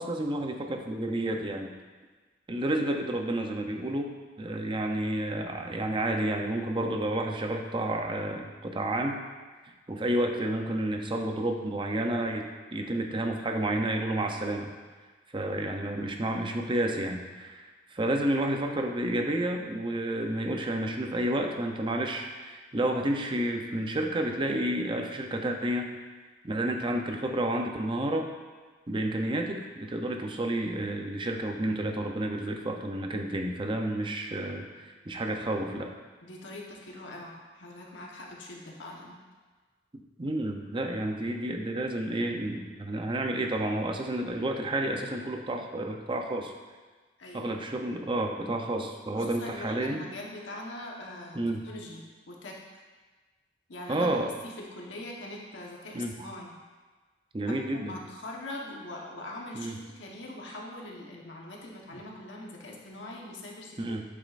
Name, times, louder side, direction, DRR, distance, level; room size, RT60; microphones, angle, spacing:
voice 1, 0.0-1.7 2.5-4.1 4.4-9.2 9.9-14.7 15.3-17.6 17.9-25.9 26.4-28.3 28.9-35.9 40.2-46.5 47.3-50.0 51.4-51.6 53.9-54.3 55.9-56.1 57.3-58.0 59.5-59.7 63.8-64.0, right 1 dB, 25° right, 3 dB, 0.6 m, -30 dB
voice 2, 36.2-39.2 47.2-47.5 49.1-51.4 51.6-52.6 53.7-56.5 57.5-63.8, left 1 dB, 75° left, -2 dB, 1.2 m, -42 dB
8.5 x 7.2 x 2.5 m, 1.3 s
head